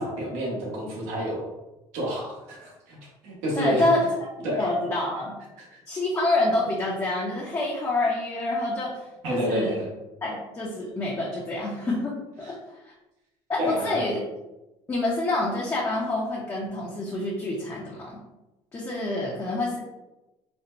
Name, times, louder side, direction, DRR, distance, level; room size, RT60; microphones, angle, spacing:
voice 1, 0.0-1.5 1.9-3.9 4.4-4.7 5.6-5.8 9.2-9.9 12.4-12.5 13.6-14.0, equal, 80° right, -3 dB, 1.3 m, -29 dB
voice 2, 3.6-4.0 4.6-5.4 5.9-9.7 10.2-12.9 13.5-14.2 14.9-18.2 18.7-19.8, left 2 dB, 25° left, -5 dB, 0.7 m, -27 dB
4.3 x 2.1 x 2.6 m, 0.99 s
cardioid pair, 125°, 12 cm